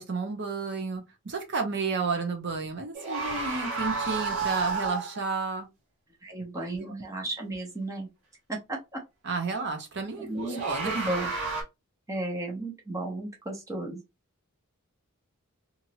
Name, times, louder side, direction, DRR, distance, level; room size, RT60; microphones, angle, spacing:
voice 1, 0.0-5.7 6.6-6.9 9.2-11.1, right 4 dB, 55° right, 0.8 m, -32 dB
sound 1, 2.9-5.2 10.3-11.6, right 4 dB, 80° right, 1.6 m, -31 dB
voice 2, 6.2-8.1 8.5-8.8 10.2-11.3 12.1-14.0, right 2 dB, 15° right, 0.7 m, -34 dB
2.9 x 2.5 x 2.8 m
head